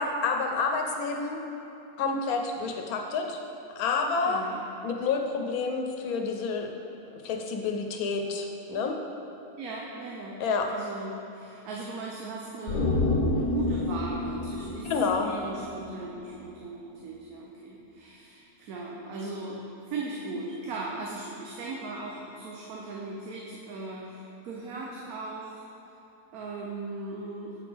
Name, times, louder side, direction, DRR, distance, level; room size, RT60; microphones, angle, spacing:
voice 1, 0.0-1.4 2.0-3.4 3.8-4.4 4.8-6.7 7.2-9.0 10.4-10.7 14.8-15.3, left 4 dB, 85° left, 3 dB, 1.1 m, -29 dB
voice 2, 4.2-4.6 9.6-10.4 10.7-14.9 15.2-25.7 26.3-27.6, right 2 dB, 90° right, -3 dB, 1.2 m, -38 dB
sound 1, 12.7-16.1 16.4-16.5, left 2 dB, 65° left, 0.4 m, -29 dB
8.1 x 5.1 x 3.4 m, 2.9 s
omnidirectional pair, 1.5 m